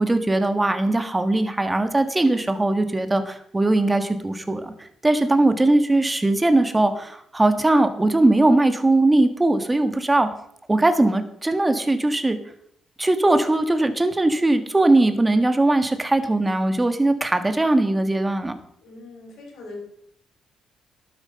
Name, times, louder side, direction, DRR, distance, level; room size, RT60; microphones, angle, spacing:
voice 1, 0.0-4.7 5.0-10.3 10.7-12.4 13.0-18.6, right 2 dB, 15° right, 9 dB, 1.5 m, -20 dB
voice 2, 5.1-5.5 18.8-19.8, left 2 dB, 75° left, 0 dB, 5.2 m, -41 dB
11.5 x 9.2 x 5.3 m, 0.69 s
cardioid pair, 90°, 0 cm